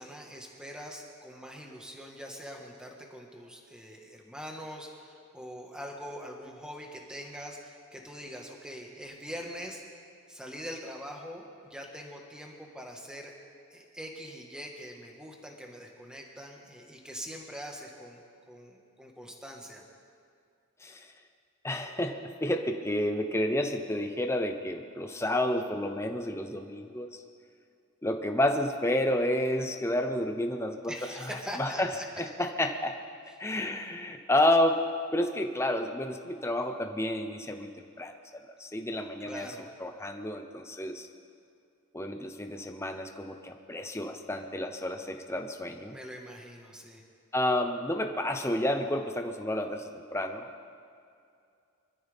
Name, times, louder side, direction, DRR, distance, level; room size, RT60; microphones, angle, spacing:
voice 1, 0.0-9.8 10.3-13.3 13.7-18.2 18.5-19.8 30.9-32.1 33.3-33.4 39.2-39.7 45.9-47.0, equal, 5° right, 0 dB, 1.6 m, -43 dB
voice 2, 21.6-27.1 28.0-30.9 31.6-31.9 32.2-33.0 33.4-34.8 35.1-37.7 38.0-38.1 38.5-39.5 39.8-41.1 41.9-45.9 47.3-50.7, left 1 dB, 10° left, 5 dB, 0.8 m, -30 dB
25.0 x 13.5 x 3.6 m, 2.4 s
head